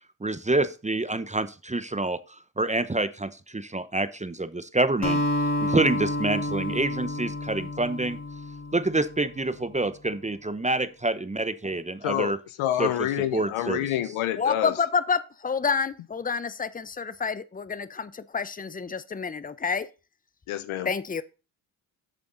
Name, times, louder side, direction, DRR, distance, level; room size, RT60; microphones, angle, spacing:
voice 1, 0.2-5.2 5.6-8.2 8.7-12.4 12.8-12.9 13.3-13.9, right 2 dB, 15° right, 0.8 m, -27 dB
Acoustic guitar, 5.0-9.5, left 1 dB, 30° left, 3.5 m, -29 dB
voice 2, 12.0-12.3 12.6-14.7 20.5-20.9, left 12 dB, 80° left, 1.0 m, -27 dB
voice 3, 14.4-19.9 20.8-21.2, left 5 dB, 15° left, 0.7 m, -28 dB
8.2 x 6.9 x 3.9 m
supercardioid pair, 50°, 49 cm